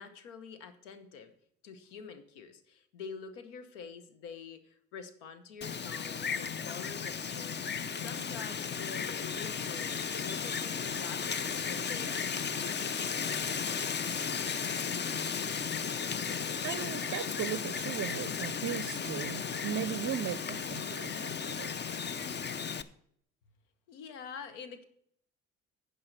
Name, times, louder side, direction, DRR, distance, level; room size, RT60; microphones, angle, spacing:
voice 1, 0.0-1.3 1.6-12.9 23.9-24.8, left 6 dB, 85° left, 10 dB, 1.0 m, -47 dB
Wind, 5.6-22.8, left 6 dB, 30° left, 0.6 m, -35 dB
voice 2, 16.6-21.8, right 11 dB, 45° right, 15 dB, 0.5 m, -37 dB
9.6 x 5.4 x 6.6 m, 0.67 s
hypercardioid pair, 55°, 36 cm